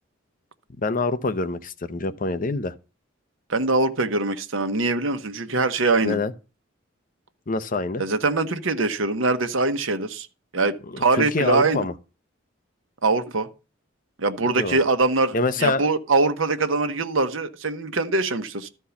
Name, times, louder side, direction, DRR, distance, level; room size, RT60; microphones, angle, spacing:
voice 1, 0.8-2.7 6.0-6.3 7.5-8.0 10.9-11.9 14.6-14.8 15.3-15.8, left 3 dB, 45° left, 0.7 m, -25 dB
voice 2, 3.5-6.2 8.0-10.3 10.5-11.8 13.0-13.5 14.2-18.7, right 3 dB, 85° right, 1.1 m, -23 dB
13.0 x 4.6 x 7.0 m
head